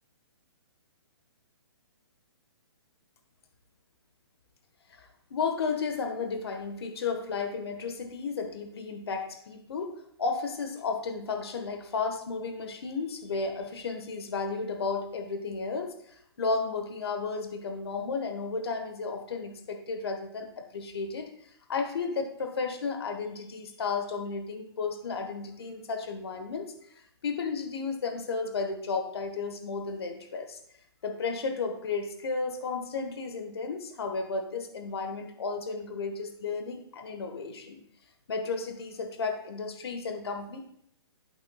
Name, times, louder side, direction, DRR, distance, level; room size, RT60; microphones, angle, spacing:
voice 1, 4.9-9.9 10.2-21.3 21.7-30.6 31.0-37.8 38.3-40.6, left 4 dB, 65° left, 5 dB, 1.3 m, -33 dB
12.0 x 5.9 x 2.3 m, 0.69 s
hypercardioid pair, 135°, 14 cm